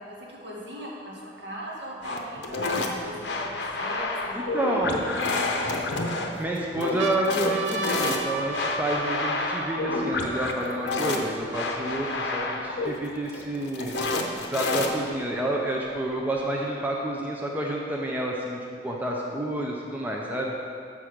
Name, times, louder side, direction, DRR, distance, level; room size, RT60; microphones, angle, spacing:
voice 1, 0.0-5.5, equal, 70° right, -5 dB, 1.8 m, -40 dB
sound 1, 2.0-15.2, left 3 dB, 60° left, 0.7 m, -29 dB
sound 2, 2.5-2.6 3.2-4.5 5.2-6.0 6.5-6.6 6.8-12.4 13.1-13.2 13.4-14.4 15.4-16.4, right 3 dB, 85° right, 0.6 m, -36 dB
voice 2, 4.3-5.0 6.4-14.0 14.4-18.6 18.8-20.5, right 1 dB, 10° right, -2 dB, 0.5 m, -29 dB
7.1 x 6.1 x 5.0 m, 2.4 s
head